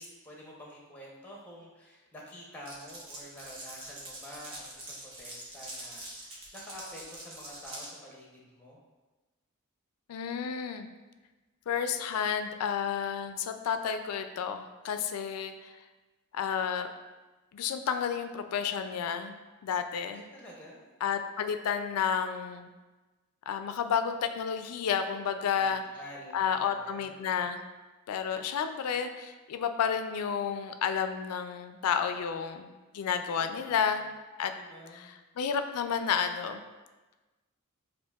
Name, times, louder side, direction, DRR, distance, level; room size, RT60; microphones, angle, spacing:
voice 1, 0.0-8.8 20.1-20.8 25.6-25.7 25.9-27.4 33.4-33.8 34.6-35.2, equal, 10° left, -3 dB, 0.7 m, -48 dB
Glass, 2.6-7.9, right 1 dB, 65° right, 1.1 m, -44 dB
voice 2, 10.1-10.9 11.7-15.7 16.3-16.9 17.5-20.2 21.0-22.7 23.5-25.8 26.3-27.6 28.1-34.1 34.4-34.5 34.9-35.1 35.4-36.6, left 7 dB, 90° left, 8 dB, 0.3 m, -31 dB
7.1 x 2.5 x 2.3 m, 1.2 s
head